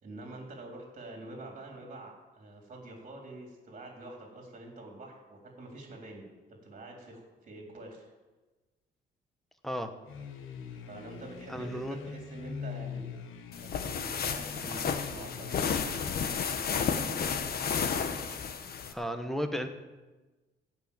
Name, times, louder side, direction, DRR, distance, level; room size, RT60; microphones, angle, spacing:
voice 1, 0.0-6.3 6.6-8.1 10.9-13.1 13.6-15.7 16.5-17.4, right 2 dB, 35° right, 0 dB, 3.7 m, -46 dB
sound 1, 10.0-17.9, left 6 dB, 80° left, 1.4 m, -44 dB
voice 2, 11.5-12.0 18.9-19.7, equal, ahead, 7 dB, 1.1 m, -34 dB
sound 2, 13.5-18.9, left 6 dB, 50° left, 1.2 m, -32 dB
16.0 x 6.0 x 8.8 m, 1.2 s
cardioid pair, 135°, 20 cm